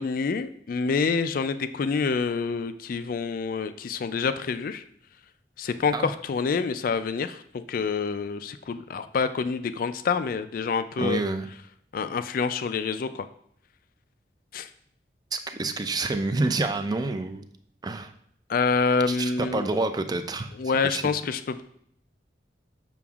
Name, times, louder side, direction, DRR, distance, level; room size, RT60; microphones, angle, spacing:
voice 1, 0.0-4.8 5.6-11.2 11.9-13.3 14.5-14.7 18.5-19.7 20.6-21.6, left 5 dB, 50° left, 11 dB, 0.3 m, -27 dB
voice 2, 11.0-11.5 15.3-17.5 17.8-18.1 19.1-20.5 20.8-21.1, right 2 dB, 20° right, 8 dB, 0.4 m, -28 dB
7.0 x 5.8 x 2.4 m, 0.67 s
head